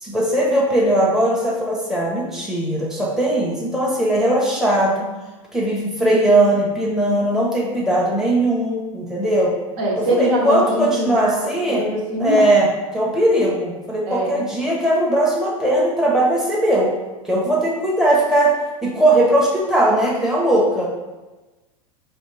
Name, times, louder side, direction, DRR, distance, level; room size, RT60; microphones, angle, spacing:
voice 1, 0.0-5.1 5.5-9.5 10.0-11.8 12.2-16.9 17.2-18.5 18.8-20.9, right 1 dB, ahead, -5 dB, 0.9 m, -19 dB
voice 2, 9.8-11.3 11.7-12.4 14.1-14.3, equal, 55° right, -2 dB, 1.2 m, -22 dB
4.2 x 3.3 x 3.2 m, 1.2 s
hypercardioid pair, 100°, 18 cm